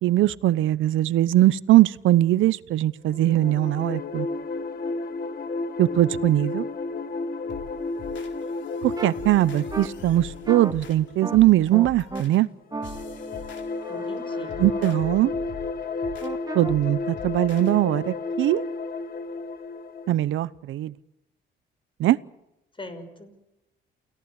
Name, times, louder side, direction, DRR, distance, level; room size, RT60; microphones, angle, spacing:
voice 1, 0.0-4.3 5.8-6.7 8.8-12.5 14.6-15.3 16.5-18.6 20.1-20.9 22.0-22.2, right 14 dB, 80° right, 18 dB, 0.9 m, -21 dB
sound 1, 3.1-11.7 12.7-20.1, left 3 dB, 50° left, 2.0 m, -32 dB
sound 2, 7.5-17.8, left 6 dB, 65° left, 3.8 m, -44 dB
sound 3, 9.0-9.1 9.7-9.9 10.5-10.7 11.2-11.4 11.7-12.2 12.7-15.0 16.2-16.7, right 3 dB, 20° right, 1.3 m, -35 dB
voice 2, 13.9-14.6 22.8-23.4, left 2 dB, 25° left, 9 dB, 5.9 m, -41 dB
29.0 x 17.5 x 8.3 m, 0.92 s
cardioid pair, 90°, 20 cm